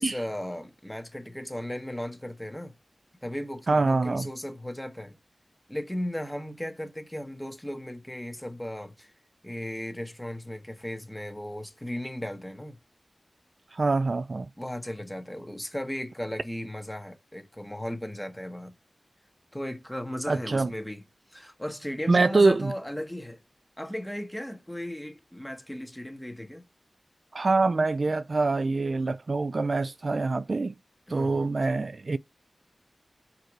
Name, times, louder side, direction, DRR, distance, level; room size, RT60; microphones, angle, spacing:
voice 1, 0.0-2.7 3.2-5.2 5.7-9.1 9.4-12.8 14.6-18.7 19.5-21.0 21.3-23.4 23.8-26.6 31.1-31.5, equal, 10° left, 1.4 m, -36 dB
voice 2, 3.7-4.3 13.7-14.5 20.3-20.7 22.1-22.7 27.3-30.7 31.1-32.2, right 3 dB, 55° right, 0.3 m, -25 dB
4.7 x 4.6 x 4.4 m
wide cardioid pair, 65°, 0 cm